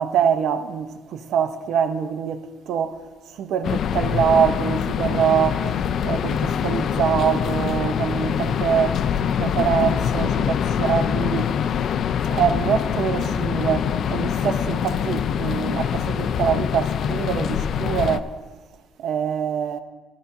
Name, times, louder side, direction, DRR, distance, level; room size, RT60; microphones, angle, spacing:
voice 1, 0.0-3.0 3.4-5.6 6.0-9.0 9.3-11.5 12.3-18.3 19.0-19.8, right 8 dB, 60° right, 0.7 m, -24 dB
sound 1, 3.6-18.2, left 8 dB, 45° left, 0.3 m, -24 dB
16.0 x 11.5 x 2.7 m
cardioid pair, 155°, 0 cm